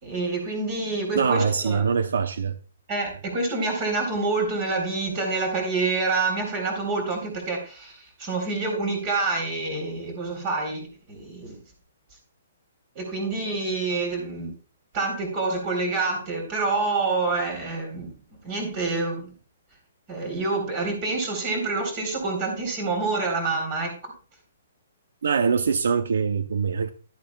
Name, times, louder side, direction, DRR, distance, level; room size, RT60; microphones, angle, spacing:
voice 1, 0.0-1.8 2.9-11.6 12.9-14.5 14.9-18.1 18.4-19.3 20.1-24.1, right 3 dB, 25° right, 3.9 m, -27 dB
voice 2, 1.1-2.6 25.2-26.9, right 6 dB, 80° right, 0.7 m, -23 dB
12.0 x 10.5 x 2.4 m
hypercardioid pair, 170°, 0 cm